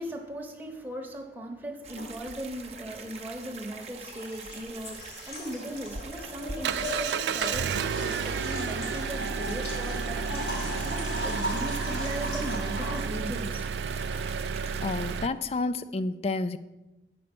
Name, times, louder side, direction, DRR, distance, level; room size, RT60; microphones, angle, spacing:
voice 1, 0.0-13.7, right 1 dB, 10° right, 0.9 m, -38 dB
sound 1, 1.8-15.2, right 4 dB, 35° right, 0.8 m, -44 dB
sound 2, 2.0-2.1 3.8-13.0, left 1 dB, 85° left, 1.9 m, -38 dB
Engine, 5.8-15.3, right 6 dB, 75° right, 0.3 m, -32 dB
voice 2, 14.8-16.6, left 3 dB, 35° left, 0.4 m, -30 dB
8.4 x 5.4 x 6.0 m
head